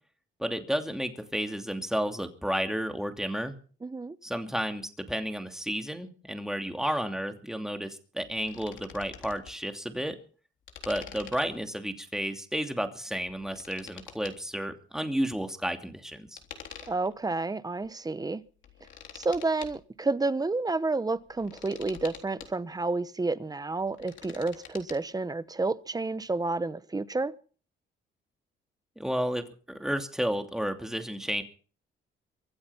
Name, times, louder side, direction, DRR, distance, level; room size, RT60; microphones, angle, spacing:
voice 1, 0.4-3.5 4.2-10.2 10.8-16.4 29.0-31.4, equal, 5° right, 2.7 m, -32 dB
voice 2, 3.8-4.2 16.9-18.4 19.1-27.3, right 3 dB, 20° right, 1.1 m, -30 dB
sound 1, 8.2-9.5 10.7-11.7 13.2-14.3 16.4-17.2 17.8-17.9 18.5-19.8 21.2-22.5 23.8-25.0, left 8 dB, 70° left, 3.6 m, -47 dB
24.5 x 8.6 x 5.8 m
cardioid pair, 90°, 20 cm